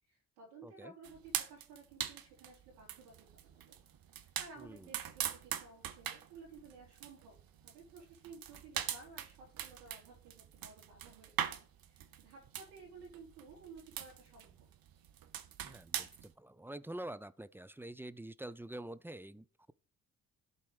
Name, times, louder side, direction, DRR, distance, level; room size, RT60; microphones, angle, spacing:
voice 1, 0.1-3.8 4.1-7.4 7.6-14.7, right 4 dB, 80° right, 3.5 m, -55 dB
voice 2, 0.6-0.9 4.6-4.9 15.6-19.7, right 1 dB, 5° right, 0.4 m, -47 dB
sound 1, 1.0-16.3, right 10 dB, 60° right, 1.1 m, -42 dB
12.0 x 4.2 x 5.0 m
hypercardioid pair, 50°, 41 cm